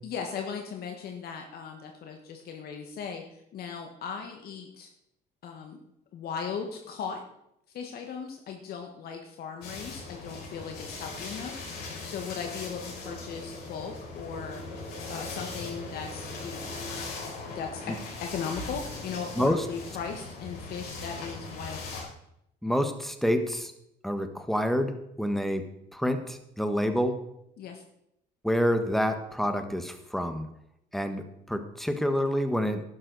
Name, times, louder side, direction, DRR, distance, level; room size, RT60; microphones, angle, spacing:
voice 1, 0.0-4.9 5.4-5.8 6.1-7.2 7.7-14.6 15.1-16.7 17.5-22.1 27.6-27.8, left 6 dB, 65° left, 3 dB, 1.5 m, -38 dB
sound 1, 9.6-22.0, left 3 dB, 80° left, 5.3 m, -39 dB
voice 2, 19.3-19.6 22.6-23.7 24.0-27.2 28.4-30.5 30.9-32.8, equal, ahead, 7 dB, 1.4 m, -28 dB
12.0 x 11.0 x 4.1 m, 0.78 s
cardioid pair, 110°, 17 cm